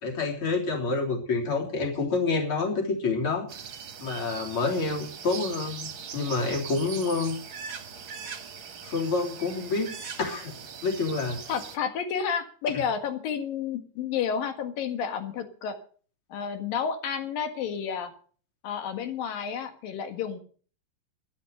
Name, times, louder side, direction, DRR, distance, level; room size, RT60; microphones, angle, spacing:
voice 1, 0.0-3.5 4.0-7.4 8.8-9.9 10.2-10.6 10.8-11.4, left 3 dB, 40° left, -1 dB, 4.0 m, -28 dB
sound 1, 3.5-11.8, right 6 dB, 45° right, 1.9 m, -41 dB
voice 2, 11.5-15.8 16.3-18.1 18.6-20.4, left 7 dB, 90° left, 7 dB, 3.5 m, -31 dB
12.5 x 10.5 x 6.7 m, 0.44 s
omnidirectional pair, 3.9 m